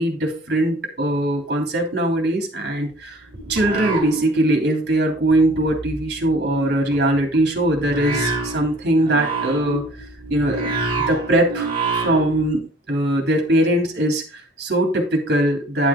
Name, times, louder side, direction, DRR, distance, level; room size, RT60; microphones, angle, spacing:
voice 1, 0.0-3.2 3.5-9.8 10.3-10.7 11.1-11.7 11.9-12.6 12.9-15.9, right 1 dB, 60° right, 2 dB, 2.9 m, -21 dB
sound 1, 2.9-4.7 5.0-12.5, right 3 dB, 30° right, 4.5 m, -28 dB
11.0 x 7.3 x 3.6 m, 0.34 s
head